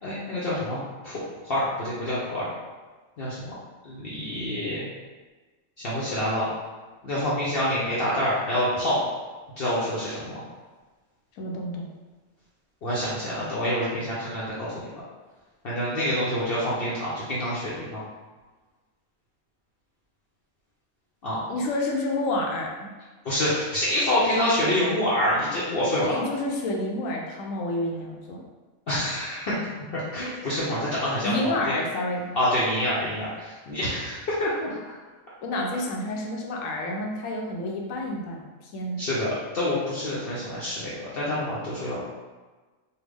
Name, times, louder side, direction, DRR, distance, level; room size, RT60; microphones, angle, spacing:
voice 1, 0.0-2.5 3.2-3.5 3.8-4.9 5.8-6.5 7.0-9.0 9.6-10.4 12.8-14.9 15.6-18.0 21.2-21.4 23.2-26.2 28.9-31.8 32.3-34.9 39.0-39.3 39.5-42.0, left 1 dB, 55° left, -8 dB, 0.7 m, -27 dB
voice 2, 11.4-11.9 21.5-22.9 26.0-28.4 31.2-32.3 35.4-39.0, left 1 dB, 75° left, 0 dB, 1.0 m, -29 dB
3.4 x 2.2 x 3.3 m, 1.3 s
omnidirectional pair, 1.4 m